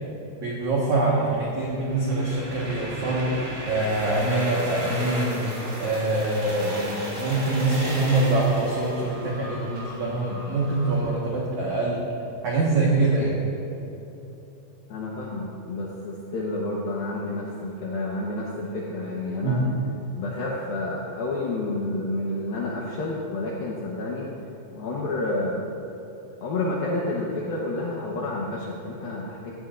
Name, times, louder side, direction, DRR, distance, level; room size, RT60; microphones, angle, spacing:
voice 1, 0.4-12.0 12.4-13.4 19.4-19.6, right 2 dB, 75° right, -5 dB, 1.7 m, -24 dB
sound 1, 1.3-11.0, right 1 dB, 30° right, 2.3 m, -35 dB
voice 2, 14.9-19.6 20.1-24.3 24.8-25.6 26.4-29.5, left 2 dB, 75° left, -4 dB, 2.2 m, -29 dB
17.5 x 14.0 x 2.6 m, 3.0 s
omnidirectional pair, 5.8 m